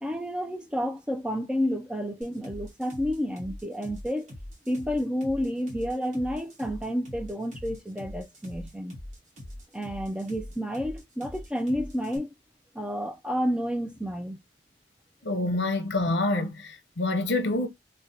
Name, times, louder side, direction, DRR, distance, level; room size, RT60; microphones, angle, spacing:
voice 1, 0.0-4.3 4.7-9.0 9.7-12.3 12.7-14.4, equal, 5° right, 0.3 m, -30 dB
sound 1, 2.2-12.2, left 1 dB, 40° right, 1.0 m, -42 dB
voice 2, 15.2-17.7, left 2 dB, 70° left, 0.8 m, -27 dB
3.8 x 2.2 x 2.7 m
head